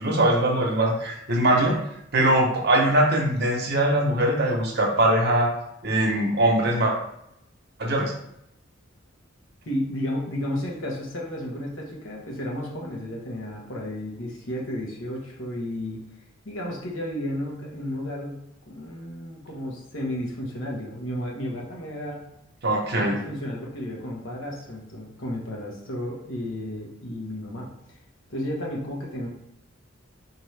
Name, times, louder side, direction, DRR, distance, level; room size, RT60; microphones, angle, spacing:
voice 1, 0.0-1.8 2.1-5.5 5.8-6.9 7.8-8.1 22.6-23.2, right 1 dB, 55° right, -1 dB, 0.9 m, -21 dB
voice 2, 9.7-16.0 16.4-18.4 18.7-22.3 23.0-27.7 28.3-29.3, left 1 dB, 75° left, -2 dB, 1.1 m, -32 dB
4.3 x 2.8 x 3.3 m, 0.78 s
head